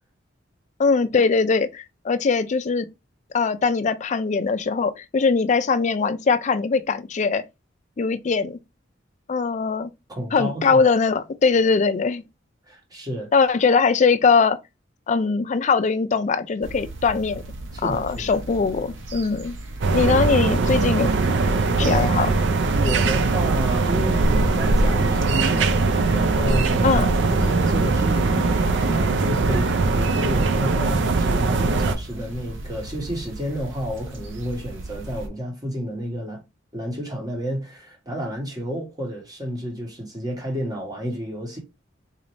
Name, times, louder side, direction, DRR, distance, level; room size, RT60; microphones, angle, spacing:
voice 1, 0.8-2.9 3.3-7.4 8.0-8.6 9.3-9.9 10.3-12.2 13.3-14.6 15.1-17.4 17.8-19.6 19.9-21.1 21.8-22.4 26.8-27.1, left 4 dB, 40° left, 0.4 m, -21 dB
voice 2, 10.1-10.8 12.7-13.3 17.7-18.4 20.0-20.2 21.8-22.1 22.7-25.8 26.1-27.0 27.3-36.4 36.7-41.6, equal, 20° right, 1.2 m, -31 dB
sound 1, 16.6-35.3, right 1 dB, 80° right, 0.8 m, -38 dB
sound 2, 19.8-32.0, right 3 dB, 65° right, 0.4 m, -21 dB
4.1 x 2.6 x 3.0 m
head